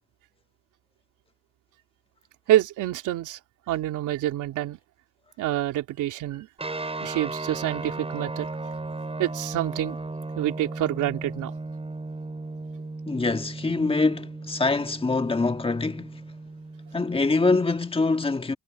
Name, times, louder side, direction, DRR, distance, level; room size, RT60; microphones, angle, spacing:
voice 1, 2.5-3.4 3.7-4.8 5.4-6.5 7.0-8.5 9.2-10.0 10.3-11.5, right 13 dB, 90° right, 3.1 m, -27 dB
sound 1, 6.6-17.8, right 3 dB, 20° right, 6.3 m, -36 dB
voice 2, 13.1-16.2 16.9-18.5, left 3 dB, 20° left, 1.7 m, -24 dB
cardioid pair, 90°, 30 cm